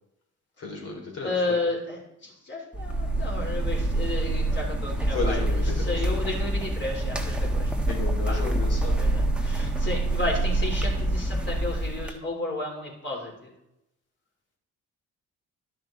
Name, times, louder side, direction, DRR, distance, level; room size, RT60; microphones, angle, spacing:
voice 1, 0.6-1.6 5.1-6.0 7.9-9.0, left 3 dB, 55° left, 0 dB, 3.4 m, -34 dB
voice 2, 1.2-7.7 8.3-8.4 9.0-13.5, left 2 dB, 35° left, -1 dB, 3.4 m, -32 dB
sound 1, 2.7-12.1, right 1 dB, 5° right, 1.1 m, -26 dB
11.5 x 6.0 x 3.8 m, 0.86 s
cardioid pair, 90°, 30 cm